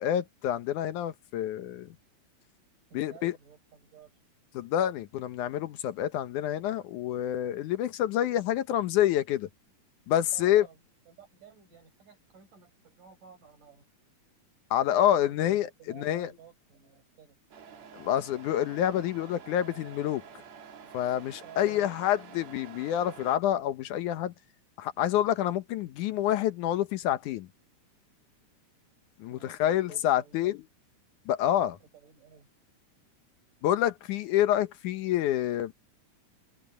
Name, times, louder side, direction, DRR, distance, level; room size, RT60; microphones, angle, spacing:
voice 1, 0.0-1.9 2.9-3.4 4.5-9.5 10.1-10.7 14.7-15.7 15.9-16.3 17.9-20.2 20.9-24.3 24.8-27.5 29.2-30.6 31.3-31.8 33.6-35.7, left 11 dB, 75° left, 2.5 m, -27 dB
voice 2, 2.9-4.1 10.3-10.8 11.1-13.9 15.2-15.4 15.8-17.4 21.4-21.7 29.3-30.5 31.6-32.5, right 7 dB, 90° right, 9.1 m, -54 dB
Truck, 17.5-23.4, right 7 dB, 60° right, 3.2 m, -49 dB
open air
omnidirectional pair, 3.6 m